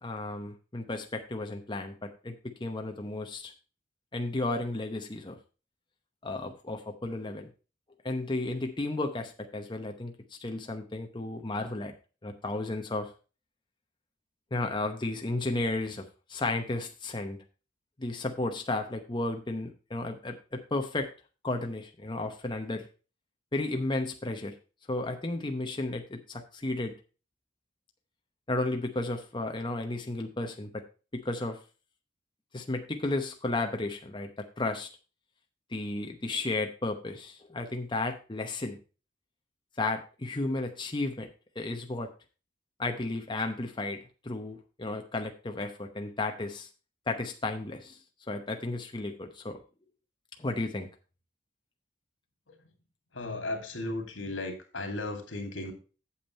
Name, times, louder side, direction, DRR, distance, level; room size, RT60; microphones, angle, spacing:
voice 1, 0.0-3.5 4.1-5.4 6.2-7.5 8.0-10.1 10.4-11.9 12.2-13.1 14.5-17.4 18.0-21.1 21.4-22.9 23.5-24.5 24.9-26.9 28.5-30.8 31.1-31.6 32.5-34.9 35.7-38.8 39.8-41.3 41.6-42.1 42.8-44.0 44.2-46.7 47.1-48.0 48.3-49.6 50.4-50.9, left 2 dB, 25° left, 4 dB, 0.8 m, -33 dB
voice 2, 53.1-55.7, left 2 dB, 85° left, 5 dB, 2.6 m, -36 dB
8.5 x 7.3 x 4.3 m, 0.34 s
head